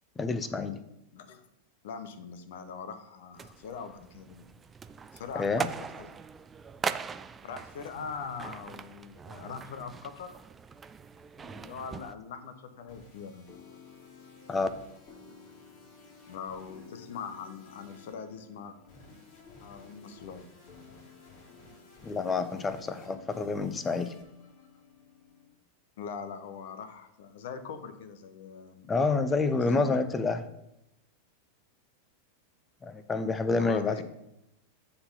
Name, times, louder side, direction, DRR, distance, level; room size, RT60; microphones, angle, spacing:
voice 1, 0.2-0.8 5.3-5.7 14.5-14.7 22.0-24.1 28.9-30.4 32.8-34.0, left 3 dB, 15° left, 12 dB, 0.7 m, -28 dB
voice 2, 1.1-1.4 1.8-4.4 5.1-5.7 6.0-6.2 7.4-10.3 11.4-13.5 16.3-18.8 19.6-20.4 26.0-28.9 29.6-30.0 33.6-34.0, left 6 dB, 55° left, 10 dB, 1.0 m, -42 dB
sound 1, 3.4-12.1, right 5 dB, 20° right, 0.4 m, -40 dB
sound 2, 12.7-25.5, left 4 dB, 40° left, 2.1 m, -53 dB
9.8 x 4.1 x 5.5 m, 0.84 s
figure-of-eight pair, 90°, 0 cm